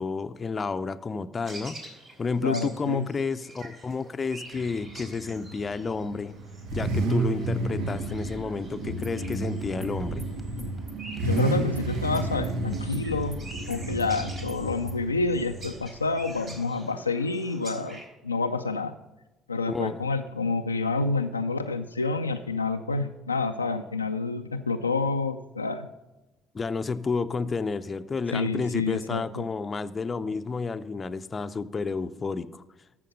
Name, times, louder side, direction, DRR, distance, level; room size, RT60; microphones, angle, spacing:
voice 1, 0.0-1.8 2.2-6.4 6.7-10.2 19.7-20.0 26.5-32.6, left 4 dB, 30° left, 11 dB, 0.6 m, -31 dB
sound 1, 1.4-18.1, right 2 dB, 45° right, 3.4 m, -47 dB
voice 2, 2.4-3.1 11.2-13.4 13.7-18.9 19.5-25.9 28.3-29.4, left 3 dB, 90° left, 6 dB, 0.4 m, -28 dB
Car / Idling / Accelerating revving vroom, 4.5-16.6, right 2 dB, 65° right, 1.2 m, -32 dB
sound 2, 8.8-15.0, equal, 10° right, 1.6 m, -43 dB
14.0 x 5.9 x 5.3 m, 1.0 s
figure-of-eight pair, 50°, 0 cm